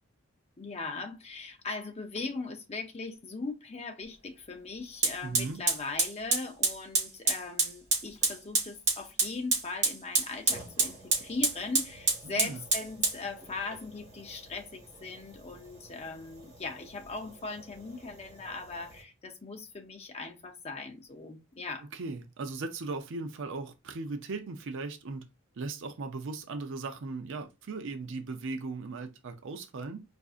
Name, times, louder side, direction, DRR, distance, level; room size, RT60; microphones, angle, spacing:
voice 1, 0.6-21.9, left 3 dB, 30° left, 0.6 m, -39 dB
Fire, 4.0-4.1 5.0-19.0, right 3 dB, 30° right, 2.1 m, -32 dB
voice 2, 5.2-5.6 12.2-12.6 21.9-25.3 25.6-30.0, right 3 dB, 55° right, 0.5 m, -38 dB
4.6 x 2.5 x 2.4 m
head